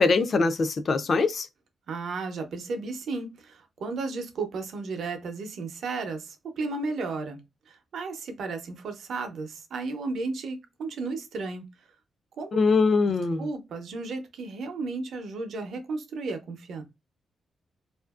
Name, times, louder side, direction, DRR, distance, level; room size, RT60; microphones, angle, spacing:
voice 1, 0.0-1.5 12.5-13.5, left 4 dB, 40° left, 0.3 m, -22 dB
voice 2, 1.9-7.4 7.7-11.6 12.4-12.6 13.4-16.8, right 3 dB, 65° right, 0.6 m, -34 dB
2.7 x 2.4 x 2.3 m
wide cardioid pair, 160°, 0 cm